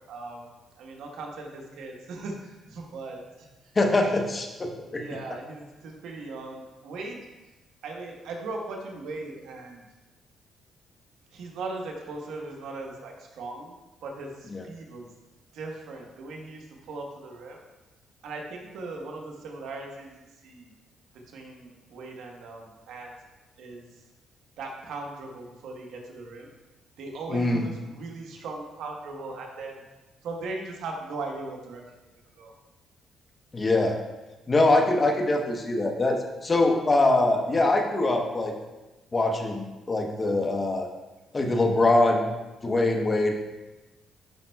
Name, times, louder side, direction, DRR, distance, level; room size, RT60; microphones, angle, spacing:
voice 1, 0.1-0.5 0.8-3.5 4.0-4.1 4.9-7.2 7.8-9.8 11.3-15.1 15.5-17.6 18.2-20.7 21.3-23.1 23.6-23.9 24.6-26.5 27.0-29.8 30.2-31.8 32.4-32.5, right 3 dB, 80° right, 1 dB, 1.2 m, -38 dB
voice 2, 3.8-5.0 14.5-14.6 27.3-27.7 33.5-34.0 34.5-38.5 39.1-40.9 41.3-42.3 42.6-43.3, left 2 dB, 30° left, 2 dB, 1.0 m, -23 dB
10.5 x 5.3 x 2.3 m, 1.1 s
cardioid pair, 90°, 0 cm